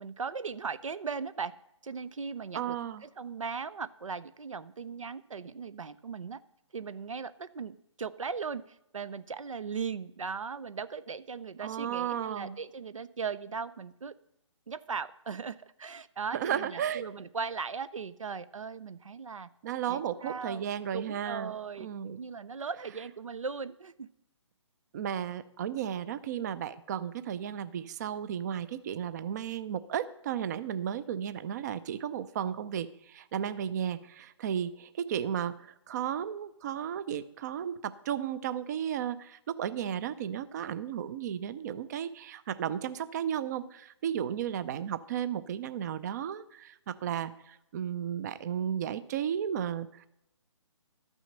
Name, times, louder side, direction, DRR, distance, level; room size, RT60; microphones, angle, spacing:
voice 1, 0.0-1.5 1.8-2.8 3.0-6.4 6.7-14.2 14.7-19.5 19.9-20.7 20.9-24.1, right 5 dB, 90° right, 15 dB, 0.6 m, -38 dB
voice 2, 2.5-3.0 11.6-12.6 16.3-17.0 19.6-21.5 21.8-22.2 24.9-50.1, right 9 dB, 35° right, 15 dB, 0.5 m, -34 dB
12.5 x 6.3 x 6.6 m, 0.81 s
hypercardioid pair, 145°, 16 cm